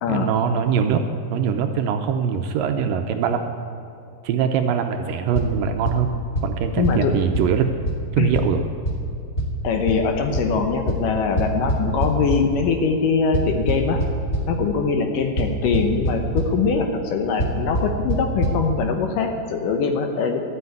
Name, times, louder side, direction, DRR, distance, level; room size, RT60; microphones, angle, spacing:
voice 1, 0.1-3.5 4.2-6.1 6.4-7.7 8.2-8.7, right 7 dB, 80° right, 6 dB, 2.2 m, -22 dB
sound 1, 5.3-5.5 5.9-6.0 6.4-6.5 6.8-6.9 7.3-7.4 7.9-8.0 8.3-8.4 8.8-8.9 9.4-9.5 9.9-10.0 10.3-10.4 10.9-11.0 11.4-12.4 13.3-14.4 15.4-15.5 15.7-16.1 16.4-16.5 17.4-17.5 17.7-17.8 18.1-18.2 18.4-18.5, right 1 dB, 25° left, 1.5 m, -22 dB
voice 2, 6.8-7.1 8.2-8.3 9.6-14.0 14.5-20.4, left 5 dB, 70° left, 5 dB, 2.3 m, -22 dB
12.5 x 8.3 x 9.4 m, 2.5 s
omnidirectional pair, 4.4 m